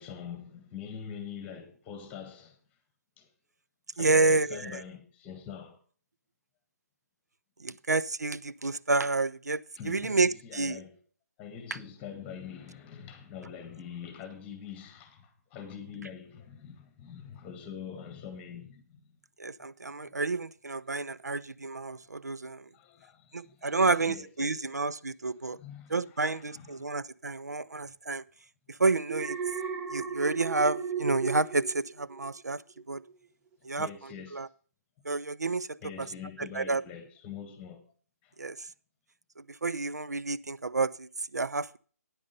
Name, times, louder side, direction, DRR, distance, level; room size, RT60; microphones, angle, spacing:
voice 1, 0.0-2.6 3.2-3.3 4.0-5.8 9.8-11.0 11.4-19.1 22.7-24.8 25.5-26.0 26.3-26.9 33.8-34.4 35.8-37.8 38.2-38.3, left 8 dB, 15° left, 1.7 m, -44 dB
voice 2, 4.0-4.8 7.6-10.8 19.4-22.7 23.3-25.6 25.9-28.2 28.7-29.4 29.9-32.6 32.9-33.0 33.6-34.5 35.0-36.1 36.4-36.8 38.4-38.7 39.4-41.8, right 3 dB, 85° right, 0.5 m, -30 dB
Alarm, 29.1-32.4 32.8-33.1, right 6 dB, 15° right, 0.9 m, -35 dB
9.5 x 8.5 x 5.3 m
figure-of-eight pair, 145°, 9 cm